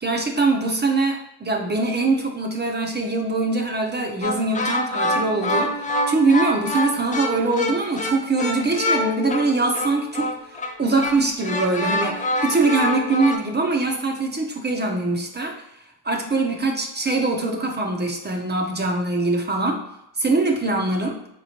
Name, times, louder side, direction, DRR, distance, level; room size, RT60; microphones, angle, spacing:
voice 1, 0.0-15.6 16.0-19.8 20.2-21.2, right 3 dB, 25° right, 2 dB, 0.6 m, -23 dB
sound 1, 4.2-13.4, left 1 dB, 20° left, 0.4 m, -26 dB
4.0 x 3.0 x 2.8 m, 0.84 s
cardioid pair, 75°, 40 cm